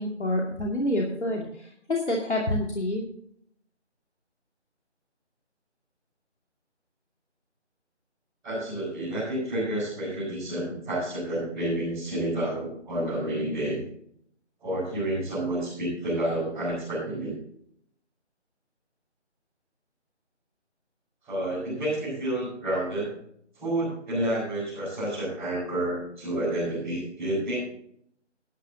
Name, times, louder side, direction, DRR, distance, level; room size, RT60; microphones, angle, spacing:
voice 1, 0.0-3.0, left 1 dB, 70° left, -1 dB, 2.6 m, -28 dB
voice 2, 8.4-13.8 14.6-17.3 21.2-23.1 23.5-27.6, right 1 dB, 5° right, -16 dB, 5.4 m, -29 dB
14.0 x 12.0 x 2.8 m, 0.65 s
figure-of-eight pair, 165°, 35 cm